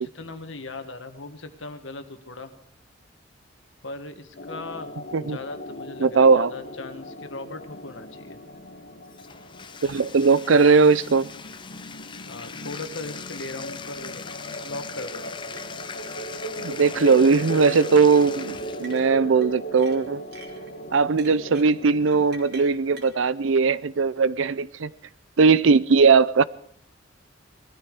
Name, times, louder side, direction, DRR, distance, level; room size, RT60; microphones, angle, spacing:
voice 1, 0.0-2.5 3.8-4.9 5.3-8.4 12.3-14.3 14.6-15.3, left 2 dB, 70° left, 1.6 m, -38 dB
sound 1, 4.3-22.2, right 1 dB, 50° left, 1.6 m, -38 dB
voice 2, 6.0-6.5 9.8-11.3 16.6-20.2 20.9-24.9 25.4-26.4, right 4 dB, 70° right, 0.5 m, -19 dB
Bathtub (filling or washing), 9.1-19.1, left 6 dB, 25° left, 0.6 m, -40 dB
sound 2, 14.5-14.7 15.0-15.1 15.6-15.7 16.9-17.2 18.8-19.5 19.8-20.7 21.2-23.2, right 3 dB, 55° right, 3.0 m, -46 dB
19.0 x 13.5 x 4.8 m
head